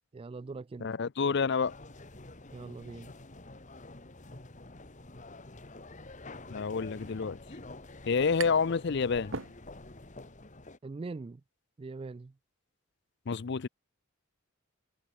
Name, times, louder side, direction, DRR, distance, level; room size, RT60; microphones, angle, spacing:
voice 1, 0.1-0.9 2.5-3.1 10.8-11.4 11.8-12.3, right 3 dB, 25° right, 0.3 m, -42 dB
voice 2, 0.8-1.7 6.5-7.4 8.1-9.3 13.3-13.7, left 5 dB, 55° left, 0.5 m, -28 dB
sound 1, 1.6-10.8, left 2 dB, 35° left, 1.8 m, -48 dB
sound 2, 8.4-8.8 9.1-10.0, right 5 dB, 65° right, 1.2 m, -41 dB
head